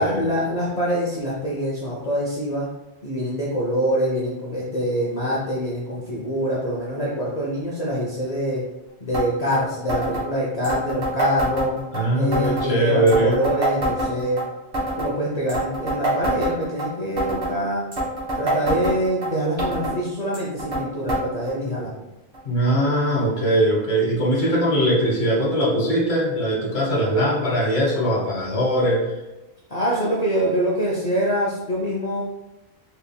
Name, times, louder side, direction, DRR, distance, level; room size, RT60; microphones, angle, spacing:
voice 1, 0.0-2.7 3.0-8.6 9.0-11.8 12.1-14.4 15.0-17.8 18.3-21.9 29.7-32.2, equal, 45° left, -5 dB, 0.7 m, -25 dB
sound 1, 9.1-9.3 9.5-9.6 9.9-10.2 10.6-12.0 12.3-12.7 13.1-14.4 14.7-15.1 15.5-16.9 17.2-17.5 17.9-19.3 19.6-20.0 20.3-20.8 21.1-21.2 21.5-21.6 22.3-22.4 23.2-23.3, right 1 dB, 55° right, 1.8 m, -25 dB
voice 2, 11.9-13.4 22.4-29.1, right 1 dB, 70° left, -5 dB, 1.5 m, -21 dB
4.3 x 3.7 x 2.2 m, 1.0 s
omnidirectional pair, 1.1 m